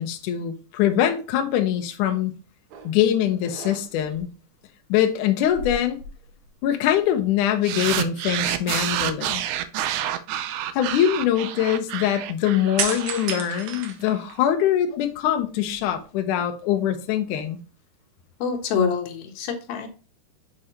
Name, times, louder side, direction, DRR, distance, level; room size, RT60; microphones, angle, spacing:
voice 1, 0.0-2.3 2.8-4.3 4.9-6.0 6.6-9.4 10.7-17.6, left 10 dB, 85° left, 1.8 m, -23 dB
sound 1, 2.7-3.0 3.4-4.2 5.4-6.7 7.0-7.1 12.8-14.6 15.1-16.0, right 6 dB, 75° right, 2.9 m, -33 dB
sound 2, 7.6-14.2, right 12 dB, 90° right, 2.0 m, -29 dB
voice 2, 18.4-19.9, left 6 dB, 70° left, 2.7 m, -26 dB
7.7 x 5.0 x 2.9 m
omnidirectional pair, 4.8 m